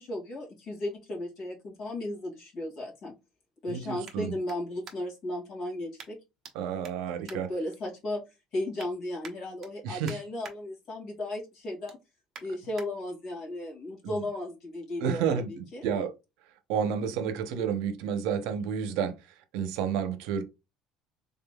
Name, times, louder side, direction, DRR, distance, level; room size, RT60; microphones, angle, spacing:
voice 1, 0.0-3.1 3.6-6.2 7.2-8.2 8.5-12.0 12.4-15.8, left 1 dB, 45° left, 2.2 m, -35 dB
sound 1, 1.7-5.3 6.0-6.5 6.8-8.1 8.5-8.9 9.2-10.6 11.0-11.2 11.6-12.9 13.4-13.5, right 6 dB, 35° right, 0.9 m, -50 dB
voice 2, 3.7-4.3 6.5-7.5 9.8-10.2 14.0-14.2 15.0-16.1 16.7-19.1 19.5-20.4, right 7 dB, 75° right, 0.8 m, -30 dB
3.8 x 3.7 x 2.3 m
cardioid pair, 170°, 0 cm